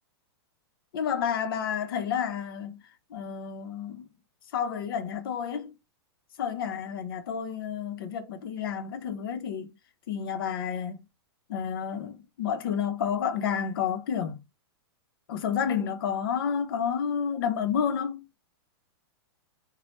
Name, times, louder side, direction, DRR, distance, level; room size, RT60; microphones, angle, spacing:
voice 1, 0.9-2.8 3.1-4.1 4.5-5.7 6.4-9.8 10.1-11.0 11.5-14.4 15.3-18.3, left 7 dB, 60° left, 0.7 m, -30 dB
3.1 x 2.2 x 3.0 m
supercardioid pair, 160°, 13 cm